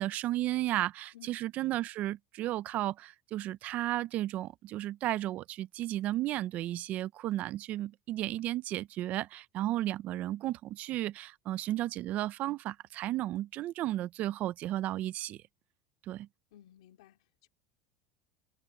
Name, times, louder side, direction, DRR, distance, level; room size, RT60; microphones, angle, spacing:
voice 1, 0.0-15.4 16.1-16.3, right 14 dB, 45° right, 0.6 m, -34 dB
voice 2, 16.5-17.5, left 12 dB, 85° left, 3.0 m, -57 dB
supercardioid pair, 120°, 3 cm